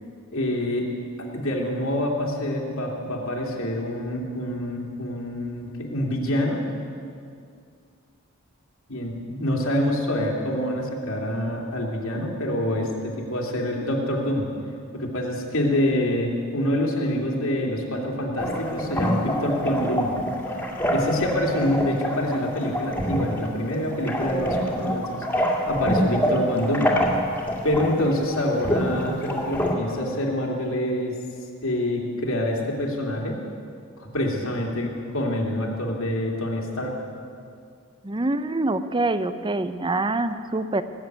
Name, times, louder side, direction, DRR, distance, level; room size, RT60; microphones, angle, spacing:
voice 1, 0.3-0.9 1.3-6.6 8.9-14.5 14.9-20.2 20.9-25.2 25.7-26.9 27.6-31.1 31.6-33.4 34.0-37.0, left 1 dB, 80° left, -2 dB, 2.6 m, -26 dB
sound 1, 18.4-29.7, equal, 10° left, 2.1 m, -26 dB
voice 2, 38.0-40.8, right 2 dB, 25° right, 11 dB, 0.6 m, -25 dB
19.0 x 7.7 x 9.3 m, 2.3 s
head